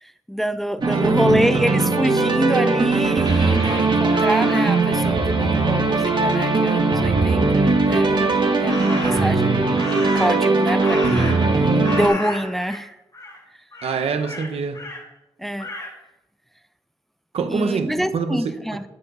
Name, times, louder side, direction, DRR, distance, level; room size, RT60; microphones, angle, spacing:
voice 1, 0.0-11.4 11.9-13.0 15.4-15.7 17.5-18.8, equal, ahead, 12 dB, 0.5 m, -26 dB
sound 1, 0.8-12.1, right 3 dB, 45° right, 1.7 m, -19 dB
voice 2, 0.8-1.4 13.8-14.8 17.3-18.5, right 5 dB, 65° right, 7 dB, 1.0 m, -26 dB
Crow, 3.2-4.9 8.7-9.4 9.8-11.6 11.8-12.8 13.1-13.4 13.7-15.0 15.6-15.9, left 2 dB, 35° left, 3.3 m, -34 dB
16.5 x 6.6 x 2.7 m, 0.93 s
supercardioid pair, 50°, 11 cm